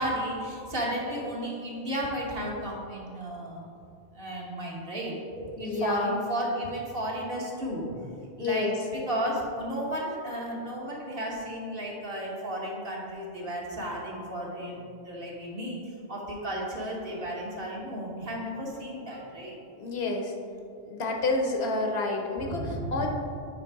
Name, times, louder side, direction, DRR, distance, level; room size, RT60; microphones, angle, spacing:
voice 1, 0.0-3.6 4.1-7.9 8.4-15.8 16.1-19.6 22.4-23.0, equal, 55° right, -3 dB, 1.4 m, -33 dB
voice 2, 5.6-6.2 8.4-8.8 19.7-20.3 20.8-23.1, left 2 dB, 70° left, 2 dB, 1.1 m, -29 dB
8.4 x 3.3 x 4.6 m, 2.4 s
omnidirectional pair, 1.1 m